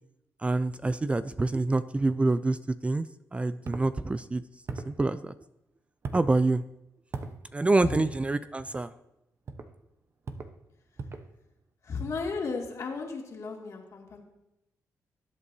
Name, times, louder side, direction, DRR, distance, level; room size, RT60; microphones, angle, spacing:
voice 1, 0.4-2.6 2.8-3.1 3.3-4.4 4.7-5.3 6.1-6.6 7.5-8.9, right 2 dB, 20° right, 13 dB, 0.4 m, -26 dB
sound 1, 3.6-3.9 4.7-5.0 6.0-6.3 7.1-7.4 8.6-8.9 9.5-9.7 10.2-10.6 11.0-11.3, right 4 dB, 45° right, 0.9 m, -38 dB
voice 2, 11.8-14.2, left 4 dB, 55° left, 0 dB, 2.4 m, -34 dB
19.5 x 8.2 x 2.8 m, 0.87 s
cardioid pair, 75°, 6 cm